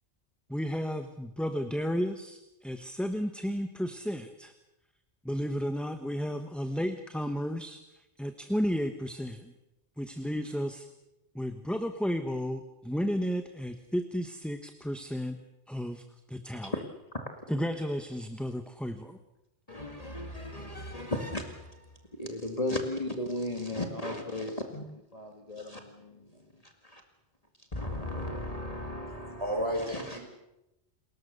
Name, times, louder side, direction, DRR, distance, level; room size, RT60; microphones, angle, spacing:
voice 1, 0.5-4.5 5.2-9.5 10.0-10.9 11.3-15.4 15.7-16.7 17.5-19.2, equal, ahead, 7 dB, 1.2 m, -33 dB
voice 2, 19.7-21.8 22.2-27.0 27.7-29.4 29.9-30.2, left 1 dB, 30° left, 4 dB, 2.1 m, -36 dB
voice 3, 29.2-30.2, equal, 25° right, 2 dB, 6.1 m, -32 dB
29.5 x 20.5 x 6.8 m, 0.92 s
omnidirectional pair, 1.2 m